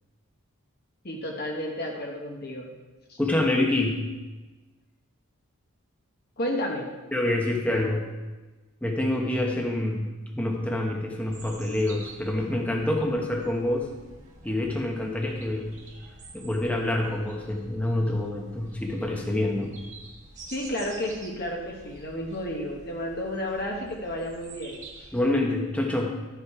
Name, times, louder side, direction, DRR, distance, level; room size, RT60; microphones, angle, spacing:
voice 1, 1.0-2.7 3.1-3.2 6.4-6.9 20.5-25.1, left 1 dB, 45° left, 0 dB, 1.2 m, -32 dB
voice 2, 3.2-4.1 7.1-8.1 8.8-13.9 14.4-15.7 16.3-19.8 25.1-26.2, left 1 dB, 5° left, 0 dB, 1.0 m, -27 dB
sound 1, 11.2-25.3, right 2 dB, 35° right, 1.6 m, -48 dB
12.5 x 5.8 x 4.8 m, 1.2 s
head